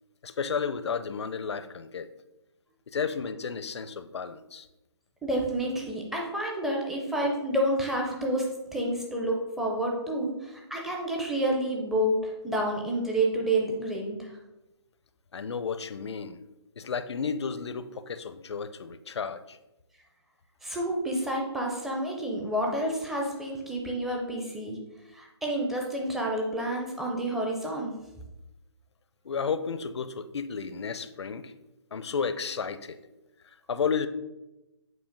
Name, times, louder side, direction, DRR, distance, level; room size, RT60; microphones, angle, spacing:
voice 1, 0.2-2.1 2.9-4.7 15.3-16.4 16.8-19.6 29.2-31.5 31.9-33.0 33.7-34.1, left 6 dB, 70° left, 12 dB, 0.6 m, -32 dB
voice 2, 5.2-14.3 20.6-24.8 25.1-28.0, right 1 dB, ahead, -1 dB, 0.4 m, -29 dB
7.8 x 2.7 x 5.1 m, 0.97 s
hypercardioid pair, 160°, 15 cm